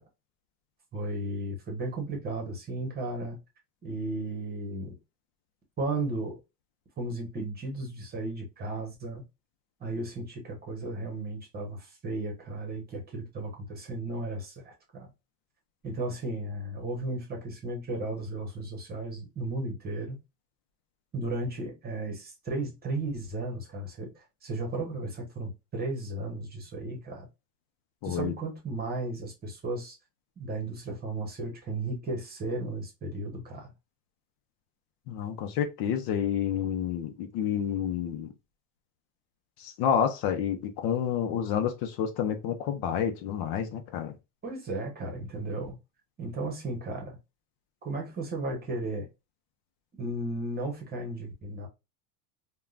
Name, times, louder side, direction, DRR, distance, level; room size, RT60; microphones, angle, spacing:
voice 1, 0.9-3.4 3.8-4.9 5.8-6.4 7.0-9.2 9.8-15.1 15.8-20.2 21.1-27.3 28.0-29.9 30.4-33.7 44.4-45.8 46.2-47.2 47.8-49.1 50.0-51.7, right 2 dB, 20° right, 1.1 m, -35 dB
voice 2, 28.0-28.3 35.1-38.3 39.6-44.1, left 8 dB, 55° left, 0.7 m, -29 dB
3.6 x 2.3 x 2.4 m
cardioid pair, 150°, 43 cm